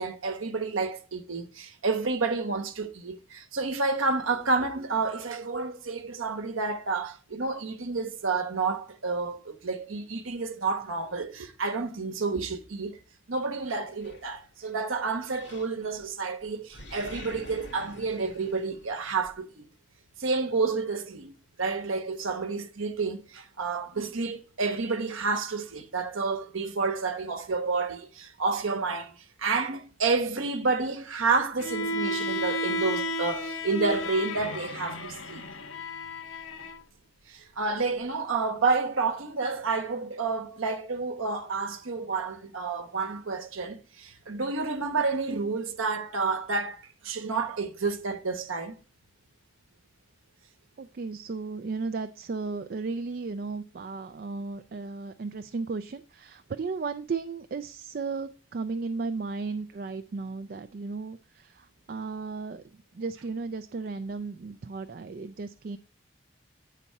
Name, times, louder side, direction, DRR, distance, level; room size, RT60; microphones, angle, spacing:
voice 1, 0.0-13.0 13.3-19.7 20.2-21.3 21.6-35.5 37.3-48.8, right 4 dB, 85° right, 1.0 m, -30 dB
Animal, 14.0-14.8 15.3-16.1 16.4-19.4, left 1 dB, 60° left, 2.0 m, -47 dB
Bowed string instrument, 31.6-36.8, equal, 80° left, 0.9 m, -33 dB
voice 2, 50.8-65.8, right 4 dB, 45° right, 0.4 m, -35 dB
8.2 x 4.1 x 5.5 m
head